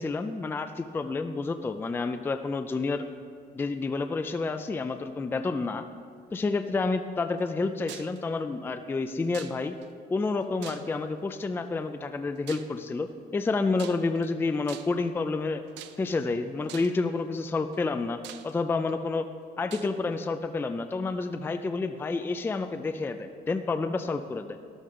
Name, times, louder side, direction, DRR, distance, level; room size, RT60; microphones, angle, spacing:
voice 1, 0.0-3.1 3.5-5.9 6.3-9.7 10.1-15.6 16.0-19.3 19.6-24.6, left 3 dB, 10° left, 8 dB, 0.4 m, -29 dB
sound 1, 7.9-8.2 9.3-9.9 10.6-11.2 12.5-12.8 13.8-14.3 14.7-15.1 15.8-16.2 16.7-17.0 17.7-17.8 18.2-18.9 19.7-19.9, right 11 dB, 85° right, 0.6 m, -44 dB
13.0 x 12.0 x 3.7 m, 2.1 s
cardioid pair, 145°, 18 cm